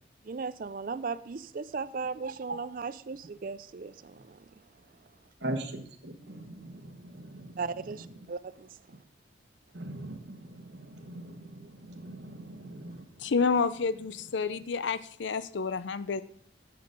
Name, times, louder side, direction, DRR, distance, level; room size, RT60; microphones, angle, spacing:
voice 1, 0.2-4.4 7.6-8.8, right 5 dB, 50° right, 0.4 m, -37 dB
voice 2, 5.4-7.6 8.2-8.3 9.7-13.1, right 1 dB, 70° right, 1.3 m, -40 dB
voice 3, 13.2-16.2, left 5 dB, 80° left, 0.5 m, -29 dB
8.1 x 6.6 x 5.2 m
head